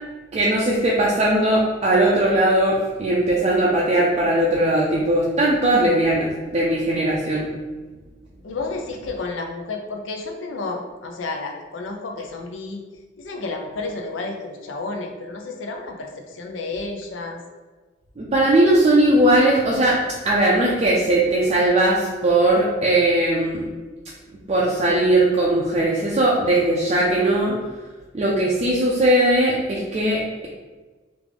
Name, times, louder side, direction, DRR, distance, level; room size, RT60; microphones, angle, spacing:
voice 1, 0.3-7.5 18.2-23.7 24.5-27.6 28.1-30.5, right 1 dB, 35° right, -4 dB, 0.4 m, -19 dB
voice 2, 8.4-12.8 13.2-17.4, left 3 dB, 80° left, 2 dB, 0.5 m, -31 dB
3.2 x 2.5 x 3.4 m, 1.3 s
head